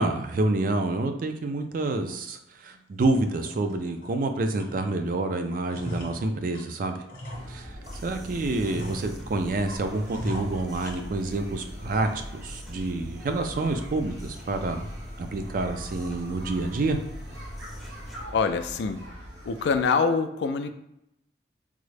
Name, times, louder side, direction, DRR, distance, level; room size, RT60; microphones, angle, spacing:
voice 1, 0.0-7.0 7.5-7.7 8.0-14.9 15.2-17.0, right 2 dB, 50° right, 7 dB, 0.3 m, -28 dB
sound 1, 2.1-2.2 2.7-2.8 3.3-4.2 4.5-5.2 5.5-8.1 8.6-9.5 10.0-11.5 11.8-12.5 12.8-12.9 13.4-13.8, equal, 50° left, 0.8 m, -39 dB
sound 2, 7.3-19.8, equal, 85° right, 1.0 m, -43 dB
sound 3, 7.8-18.3, equal, ahead, 0.5 m, -42 dB
voice 2, 18.3-19.1 19.4-20.7, left 5 dB, 70° left, 9 dB, 0.3 m, -25 dB
3.6 x 2.0 x 3.2 m, 0.81 s
head